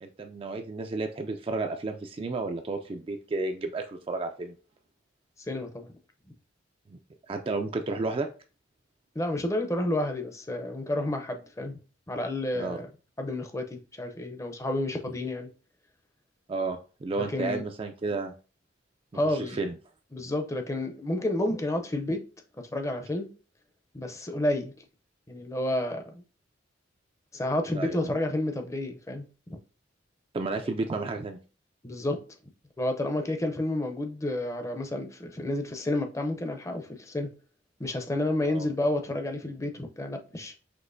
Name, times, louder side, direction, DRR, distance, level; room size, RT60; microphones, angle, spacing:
voice 1, 0.0-4.6 6.9-7.0 7.3-8.3 12.5-12.8 16.5-18.3 19.1-19.7 27.8-28.1 30.3-31.4 38.4-38.7, right 3 dB, 30° right, 0.3 m, -32 dB
voice 2, 5.5-5.9 9.1-11.8 12.1-12.9 13.2-15.5 17.2-17.6 19.1-19.6 20.1-22.2 22.7-23.3 23.9-24.7 25.3-26.2 27.3-29.6 31.8-32.2 32.8-37.3 37.8-40.6, left 1 dB, 15° left, 0.6 m, -30 dB
6.0 x 2.9 x 2.6 m
head